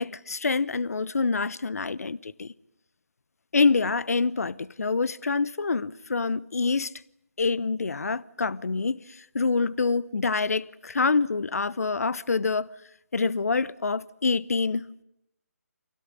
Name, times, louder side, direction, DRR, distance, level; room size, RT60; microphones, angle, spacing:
voice 1, 0.0-2.5 3.5-6.9 7.4-9.0 9.3-12.7 13.1-15.0, left 4 dB, 65° left, 0.9 m, -26 dB
27.5 x 17.0 x 9.7 m
figure-of-eight pair, 155°, 9 cm